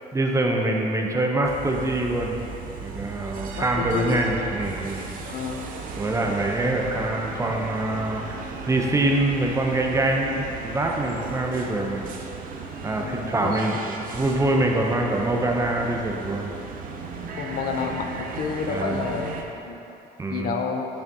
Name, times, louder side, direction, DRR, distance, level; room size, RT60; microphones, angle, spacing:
voice 1, 0.1-2.4 2.8-5.1 6.0-12.1 12.8-16.5 18.7-19.0 20.2-20.5, right 2 dB, 15° right, 1 dB, 0.6 m, -25 dB
sound 1, 1.4-19.4, right 4 dB, 55° right, 0.6 m, -36 dB
voice 2, 3.6-4.2 5.3-5.7 12.9-13.8 17.4-19.8 20.3-20.9, left 5 dB, 60° left, 4 dB, 0.5 m, -30 dB
6.6 x 5.9 x 2.7 m, 2.9 s
cardioid pair, 110°, 17 cm